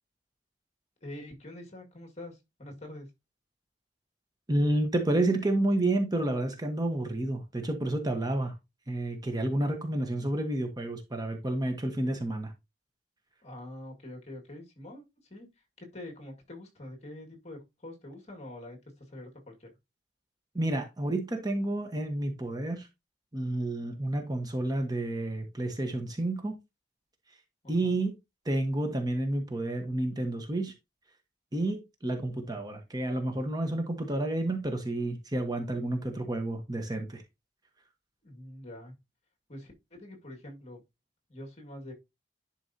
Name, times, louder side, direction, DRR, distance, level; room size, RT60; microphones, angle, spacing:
voice 1, 1.0-3.1 13.4-19.7 27.6-28.0 38.2-38.9 39.5-40.8 41.3-41.9, left 1 dB, 40° left, 2.1 m, -45 dB
voice 2, 4.5-8.5 8.9-12.5 20.5-22.9 23.3-26.6 27.7-28.2 28.4-30.7 31.5-37.2, right 1 dB, 20° right, 1.2 m, -30 dB
11.0 x 4.5 x 2.8 m
head